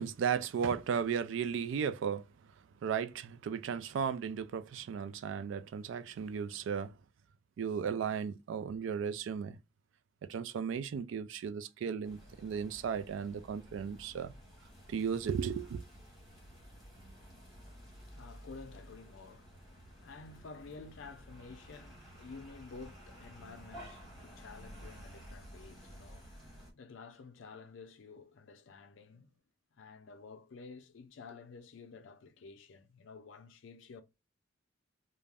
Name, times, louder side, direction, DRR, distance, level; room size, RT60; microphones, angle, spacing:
voice 1, 0.0-2.3 2.8-6.9 7.6-9.6 10.2-14.3 14.9-15.8, right 7 dB, 70° right, 0.3 m, -35 dB
sound 1, 12.0-26.7, equal, ahead, 1.0 m, -53 dB
voice 2, 17.7-29.3 29.7-34.0, left 4 dB, 75° left, 0.4 m, -52 dB
2.4 x 2.1 x 3.3 m
head